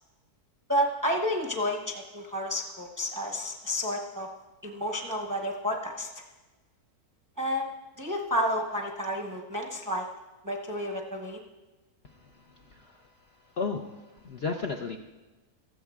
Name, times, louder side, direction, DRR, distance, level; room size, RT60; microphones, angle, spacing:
voice 1, 0.7-4.3 4.6-6.1 7.4-7.7 8.0-10.1 10.4-11.4, equal, 15° right, 1 dB, 0.7 m, -30 dB
voice 2, 12.7-13.0 13.6-14.0 14.2-15.0, left 4 dB, 60° left, 3 dB, 0.7 m, -32 dB
15.5 x 13.5 x 2.4 m, 1.2 s
omnidirectional pair, 1.6 m